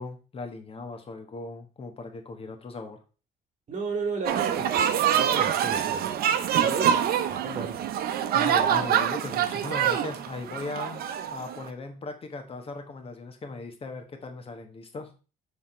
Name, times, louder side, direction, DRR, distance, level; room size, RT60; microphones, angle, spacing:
voice 1, 0.0-3.0 8.3-15.1, left 3 dB, 35° left, 6 dB, 1.2 m, -38 dB
voice 2, 3.7-4.8 5.1-6.2 6.6-7.0 7.3-7.8, right 4 dB, 45° right, 5 dB, 2.0 m, -33 dB
sound 1, 4.2-11.7, right 9 dB, 65° right, 0.7 m, -25 dB
7.9 x 3.6 x 4.3 m, 0.34 s
cardioid pair, 110°, 17 cm